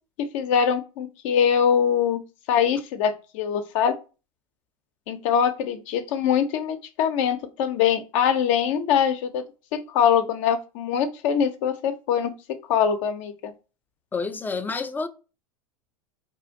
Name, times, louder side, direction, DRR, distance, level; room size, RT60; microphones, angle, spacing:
voice 1, 0.3-2.2 2.5-3.9 5.1-9.4 9.7-12.3 12.7-13.3, left 8 dB, 60° left, 0.6 m, -23 dB
voice 2, 14.1-15.1, left 4 dB, 10° left, 0.4 m, -29 dB
4.2 x 2.4 x 2.7 m
hypercardioid pair, 95°, 19 cm